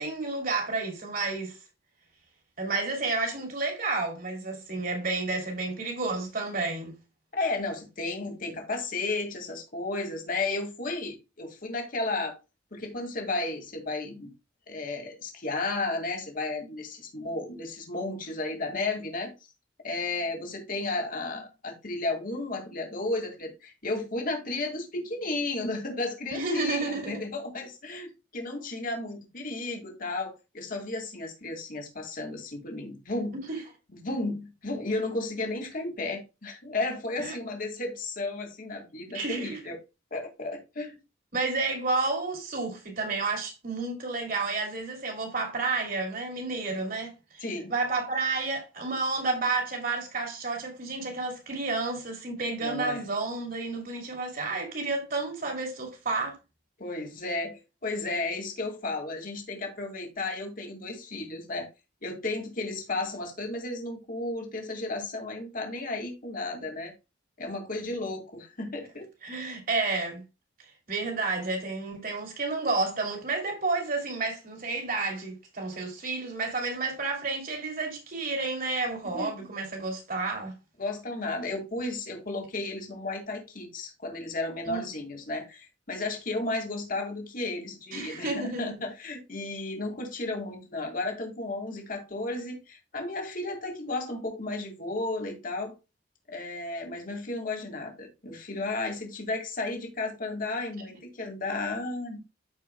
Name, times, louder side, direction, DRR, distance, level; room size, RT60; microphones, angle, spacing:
voice 1, 0.0-1.6 2.6-6.9 26.3-27.1 33.5-33.6 37.2-37.4 39.1-39.6 41.3-47.4 47.7-56.4 69.2-70.2 70.9-80.6 84.6-84.9 87.9-88.7, right 3 dB, 50° right, 2.9 m, -31 dB
voice 2, 7.3-12.4 12.7-14.3 14.7-19.3 19.8-33.4 33.9-39.8 40.1-41.0 47.4-47.7 52.6-53.0 56.8-61.7 62.0-66.9 67.4-69.1 79.1-79.5 80.8-95.7 96.3-102.2, left 2 dB, 50° left, 2.1 m, -33 dB
13.5 x 4.6 x 2.2 m
head